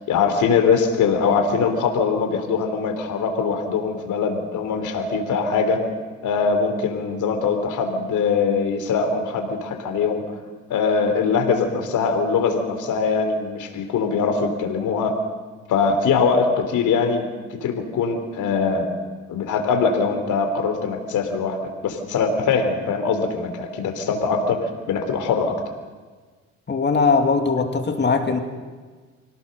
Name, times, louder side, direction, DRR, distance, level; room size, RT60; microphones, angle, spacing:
voice 1, 0.1-5.8 6.2-10.3 10.7-15.1 15.7-18.9 19.3-25.6, left 5 dB, 75° left, 6 dB, 3.3 m, -22 dB
voice 2, 26.7-28.4, left 4 dB, 35° left, 5 dB, 2.5 m, -20 dB
25.5 x 17.5 x 6.6 m, 1.4 s
cardioid pair, 90°, 30 cm